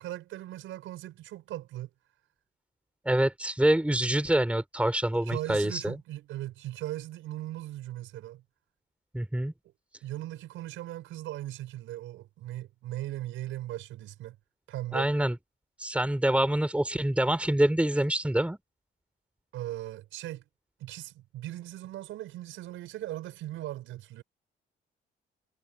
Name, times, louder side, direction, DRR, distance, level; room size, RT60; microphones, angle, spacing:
voice 1, 0.0-1.9 5.2-8.4 10.0-14.4 14.7-15.1 19.5-20.4 20.8-24.2, right 14 dB, 90° right, 5.8 m, -38 dB
voice 2, 3.1-6.0 9.1-9.5 14.9-15.4 15.8-18.6, right 1 dB, 5° right, 3.8 m, -26 dB
cardioid pair, 90°, 20 cm